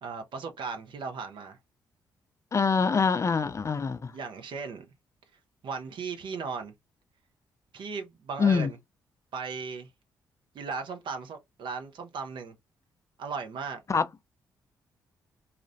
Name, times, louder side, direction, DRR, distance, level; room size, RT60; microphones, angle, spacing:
voice 1, 0.0-1.6 4.1-4.9 5.6-6.7 7.7-8.8 9.3-9.9 10.5-12.5 13.2-13.8, right 5 dB, 60° right, 0.5 m, -36 dB
voice 2, 2.5-4.1 8.4-8.7 13.9-14.1, left 5 dB, 35° left, 0.4 m, -24 dB
2.4 x 2.1 x 2.4 m
supercardioid pair, 50°, 9 cm